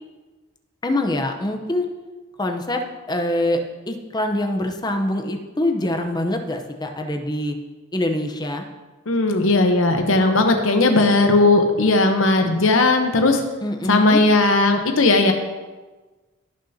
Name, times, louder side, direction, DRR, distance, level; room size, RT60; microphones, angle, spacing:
voice 1, 0.8-1.9 2.4-2.8 3.1-7.5 7.9-8.6 13.6-14.2, left 1 dB, 20° left, 4 dB, 0.7 m, -24 dB
voice 2, 9.1-13.4 13.9-15.3, left 2 dB, 80° left, 4 dB, 0.9 m, -17 dB
17.0 x 6.6 x 2.8 m, 1.3 s
head